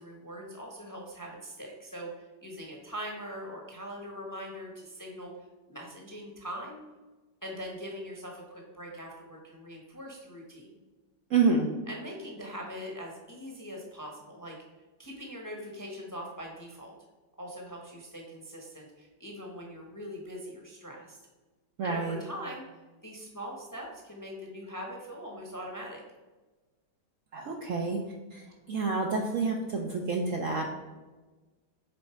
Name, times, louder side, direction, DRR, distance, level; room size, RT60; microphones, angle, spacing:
voice 1, 0.0-6.8 7.4-10.8 11.9-14.6 15.0-16.9 17.4-21.2 21.8-22.6 23.0-26.0, equal, 15° left, 0 dB, 0.8 m, -42 dB
voice 2, 11.3-11.7 21.8-22.2 27.3-28.0 28.3-30.8, right 4 dB, 65° right, 1 dB, 0.8 m, -28 dB
6.5 x 4.1 x 4.5 m, 1.2 s
omnidirectional pair, 1.9 m